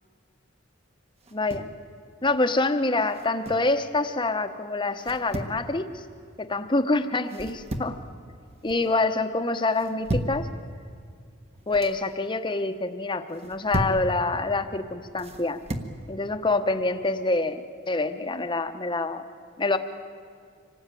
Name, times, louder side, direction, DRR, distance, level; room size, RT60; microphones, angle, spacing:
sound 1, 1.2-1.8 3.1-3.7 5.0-5.6 7.3-8.0 8.4-8.9 9.7-10.4 11.5-12.0 13.3-14.1 15.2-15.9, right 1 dB, 30° right, 1.3 m, -33 dB
voice 1, 1.3-1.7 2.2-6.0 6.4-8.0 8.6-10.5 11.7-15.6 16.1-19.2 19.6-19.8, left 2 dB, 20° left, 8 dB, 1.0 m, -26 dB
26.0 x 18.5 x 9.1 m, 2.2 s
head